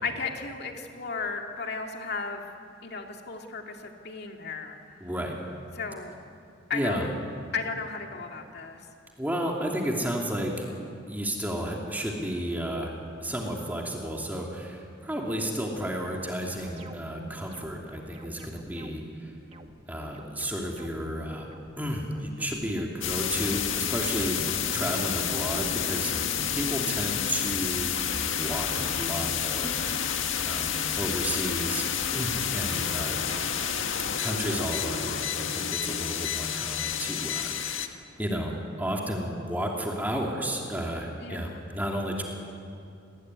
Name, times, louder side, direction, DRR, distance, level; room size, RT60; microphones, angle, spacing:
voice 1, 0.0-2.4 2.8-4.8 5.7-6.1 6.7-7.1 7.5-8.8 32.0-32.5 41.2-41.6, left 4 dB, 55° left, 2 dB, 2.4 m, -35 dB
voice 2, 5.0-5.4 6.7-7.1 9.2-10.7 11.1-12.9 13.2-19.3 19.9-24.5 24.7-26.1 26.5-28.0 28.3-30.1 30.5-31.9 32.1-33.2 34.2-37.9 38.2-42.2, equal, 10° right, -1 dB, 2.7 m, -32 dB
sound 1, 16.6-29.9, right 1 dB, 30° right, 1.4 m, -45 dB
sound 2, 23.0-37.9, left 8 dB, 80° left, 1.8 m, -30 dB
29.0 x 20.5 x 9.7 m, 2.5 s
head